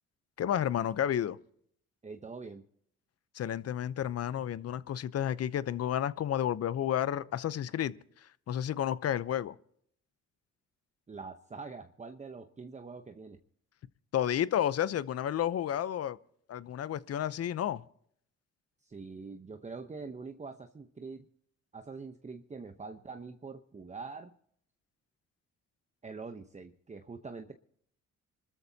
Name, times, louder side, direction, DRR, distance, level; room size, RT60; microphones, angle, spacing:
voice 1, 0.4-1.4 3.3-7.9 8.5-9.6 14.1-16.2 16.5-17.8, left 10 dB, 55° left, 0.8 m, -31 dB
voice 2, 2.0-2.6 11.1-13.4 18.8-21.3 21.7-24.3 26.0-27.5, right 4 dB, 25° right, 0.9 m, -44 dB
26.5 x 13.5 x 2.8 m
cardioid pair, 90°, 30 cm